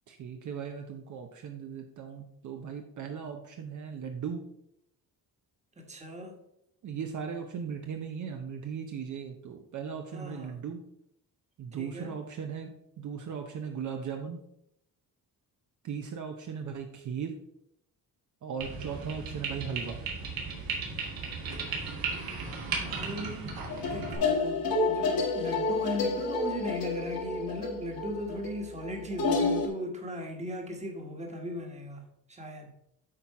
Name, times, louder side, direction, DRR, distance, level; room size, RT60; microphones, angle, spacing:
voice 1, 0.1-4.4 6.8-10.8 11.6-12.7 13.0-14.4 15.8-17.4 18.4-20.0, right 7 dB, 55° right, 4 dB, 0.8 m, -37 dB
voice 2, 5.8-6.4 10.1-10.6 11.7-12.2 22.7-32.7, equal, 20° right, 3 dB, 1.3 m, -38 dB
sound 1, 18.6-24.2, right 4 dB, 75° right, 2.2 m, -36 dB
sound 2, 23.7-29.7, left 3 dB, 75° left, 1.9 m, -29 dB
8.6 x 4.3 x 4.7 m, 0.79 s
cardioid pair, 145°, 36 cm